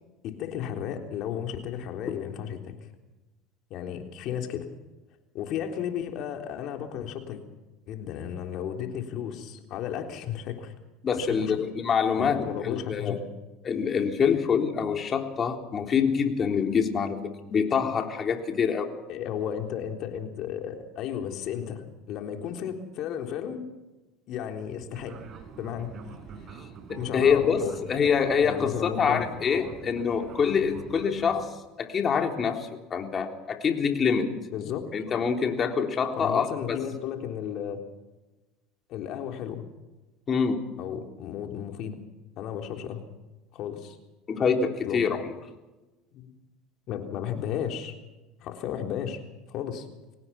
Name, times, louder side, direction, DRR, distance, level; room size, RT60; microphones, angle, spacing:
voice 1, 0.2-2.8 3.7-4.7 5.3-7.4 7.9-10.7 11.1-11.6 12.2-13.2 19.1-23.6 24.3-25.2 25.6-25.9 26.9-27.7 28.4-29.3 34.5-34.9 36.2-37.8 38.9-39.6 40.8-42.0 42.4-43.0 43.5-44.0 44.9-45.0 46.1-46.3 46.9-47.9 48.4-49.2 49.5-49.9, left 9 dB, 55° left, 4 dB, 3.6 m, -34 dB
voice 2, 11.0-13.2 13.6-18.8 27.1-31.5 31.8-34.3 34.9-36.8 40.3-40.6 44.3-45.3, left 6 dB, 35° left, 4 dB, 3.5 m, -25 dB
Fixed-wing aircraft airplane, 24.9-31.5, right 6 dB, 45° right, 4.1 m, -45 dB
24.0 x 18.5 x 6.0 m, 1.1 s
supercardioid pair, 95°, 0 cm